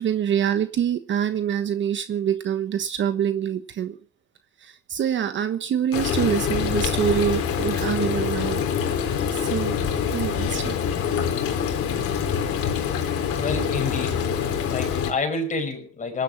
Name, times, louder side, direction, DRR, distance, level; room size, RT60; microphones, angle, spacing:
voice 1, 0.0-4.0 4.6-8.6 8.9-9.8 10.1-10.8, right 9 dB, 40° right, 10 dB, 1.2 m, -25 dB
Frying (food), 5.9-15.1, left 7 dB, 45° left, 3.4 m, -25 dB
voice 2, 13.3-14.2 14.7-16.2, left 3 dB, 25° left, 4 dB, 5.8 m, -28 dB
19.0 x 11.5 x 5.8 m, 0.42 s
supercardioid pair, 120°, 31 cm